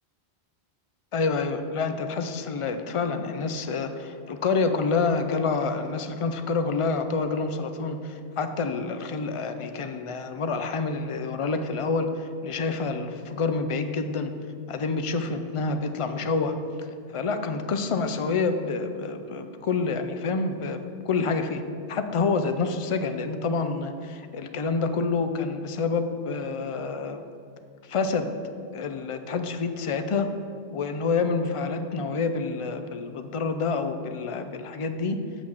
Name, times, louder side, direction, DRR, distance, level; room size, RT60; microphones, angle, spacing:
voice 1, 1.1-14.3 14.7-21.6 21.9-27.2 27.8-28.3 28.7-30.3 30.7-35.2, left 4 dB, 50° left, 8 dB, 0.3 m, -28 dB
6.2 x 5.8 x 6.4 m, 2.3 s
omnidirectional pair, 1.1 m